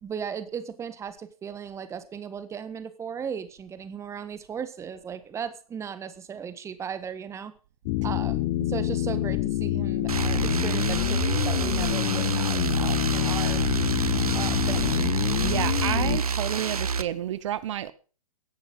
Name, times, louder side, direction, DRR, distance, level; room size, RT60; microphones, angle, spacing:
voice 1, 0.0-7.5 8.0-13.7 14.3-15.1, right 7 dB, 15° right, 1.4 m, -36 dB
sound 1, 7.9-16.2, left 16 dB, 40° left, 1.5 m, -27 dB
sound 2, 10.1-17.0, right 5 dB, 80° right, 1.5 m, -28 dB
voice 2, 15.4-17.9, right 11 dB, 55° right, 1.2 m, -30 dB
17.0 x 11.0 x 5.3 m
hypercardioid pair, 120°, 19 cm